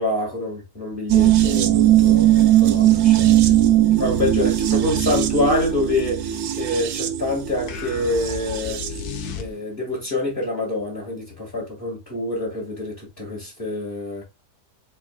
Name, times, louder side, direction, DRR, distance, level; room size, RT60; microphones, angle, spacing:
voice 1, 0.0-3.4 4.0-8.8 9.4-14.2, left 2 dB, 30° left, 2.1 m, -26 dB
sound 1, 1.1-9.0 9.3-9.4, right 13 dB, 70° right, 1.0 m, -19 dB
sound 2, 7.7-10.0, left 6 dB, 70° left, 1.2 m, -33 dB
4.4 x 4.3 x 2.3 m
omnidirectional pair, 1.8 m